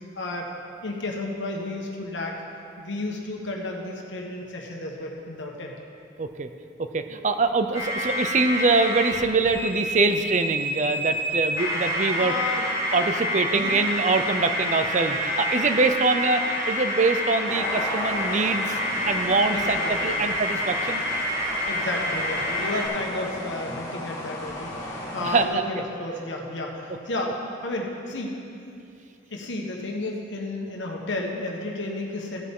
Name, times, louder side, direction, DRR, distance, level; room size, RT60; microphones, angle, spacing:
voice 1, 0.1-0.5 0.8-2.3 2.8-5.7 12.2-12.7 13.5-13.8 19.5-20.3 21.7-28.3 29.3-32.4, left 2 dB, 75° left, 0 dB, 1.4 m, -32 dB
voice 2, 6.2-6.5 6.8-12.3 12.9-21.0 25.2-25.8, right 3 dB, 40° right, 8 dB, 0.5 m, -24 dB
sound 1, 7.7-9.1 9.4-22.9, equal, 15° right, 2.7 m, -28 dB
sound 2, 17.5-25.4, left 1 dB, 20° left, 1.7 m, -35 dB
16.0 x 8.4 x 3.7 m, 2.6 s
head